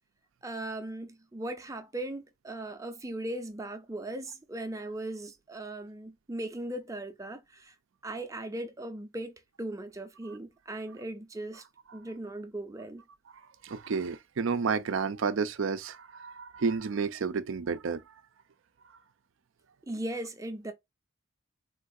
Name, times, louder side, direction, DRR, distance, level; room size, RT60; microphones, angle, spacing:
voice 1, 0.4-7.7 8.0-11.6 11.9-13.0 19.9-20.7, right 1 dB, 15° right, 0.5 m, -38 dB
voice 2, 13.6-18.0, right 5 dB, 70° right, 0.4 m, -31 dB
3.8 x 2.4 x 2.6 m
head